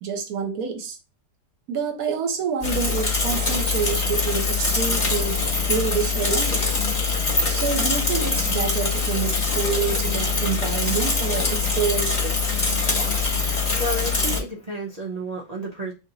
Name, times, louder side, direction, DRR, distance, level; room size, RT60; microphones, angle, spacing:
voice 1, 0.0-1.0 1.7-5.4 5.7-6.7 7.5-12.4, right 6 dB, 70° right, 1.1 m, -27 dB
Bicycle / Mechanisms, 2.6-14.4, left 4 dB, 35° left, 1.0 m, -23 dB
voice 2, 13.5-15.9, right 1 dB, 90° right, 0.3 m, -31 dB
3.0 x 2.8 x 3.8 m
omnidirectional pair, 1.7 m